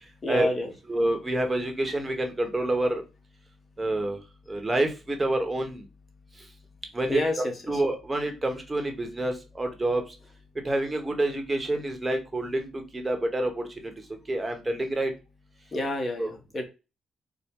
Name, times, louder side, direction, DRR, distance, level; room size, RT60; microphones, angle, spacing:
voice 1, 0.2-0.7 7.1-7.8 15.7-16.6, left 1 dB, 30° left, 4 dB, 1.1 m, -29 dB
voice 2, 0.9-3.0 3.8-4.2 4.5-5.8 6.9-7.2 7.7-10.1 10.6-13.9 14.3-15.1 16.2-16.3, right 1 dB, 20° right, 4 dB, 1.0 m, -27 dB
4.1 x 2.2 x 3.6 m, 0.29 s
cardioid pair, 90°, 0 cm